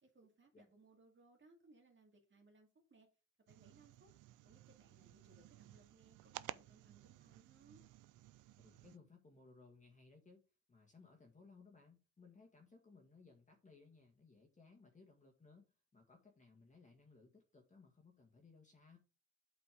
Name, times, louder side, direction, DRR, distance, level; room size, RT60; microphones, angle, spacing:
voice 1, 0.0-3.1 3.5-4.1 4.4-7.8, right 3 dB, 40° right, 2.4 m, -67 dB
sound 1, 3.5-9.0, right 16 dB, 85° right, 0.6 m, -55 dB
voice 2, 8.6-10.4 10.7-15.7 15.9-19.0, left 4 dB, 25° left, 1.9 m, -63 dB
8.0 x 5.1 x 5.1 m
cardioid pair, 90°, 30 cm